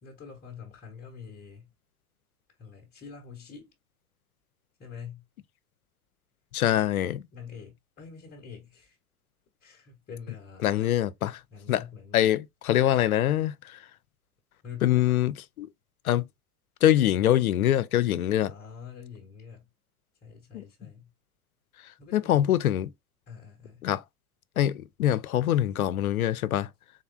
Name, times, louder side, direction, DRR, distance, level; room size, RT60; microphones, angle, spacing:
voice 1, 0.0-1.7 2.6-3.7 4.8-5.2 7.3-9.0 9.6-11.0 11.5-12.3 14.6-15.2 18.4-19.7 20.2-21.1 22.0-22.5 23.3-23.9, left 6 dB, 20° left, 0.9 m, -45 dB
voice 2, 6.5-7.2 10.6-11.4 11.7-11.8 12.1-13.8 14.8-15.7 16.0-16.2 16.8-18.5 20.5-20.6 22.1-22.9 23.8-24.0 24.6-26.7, left 12 dB, 70° left, 0.5 m, -24 dB
3.8 x 3.2 x 2.2 m
figure-of-eight pair, 90°, 44 cm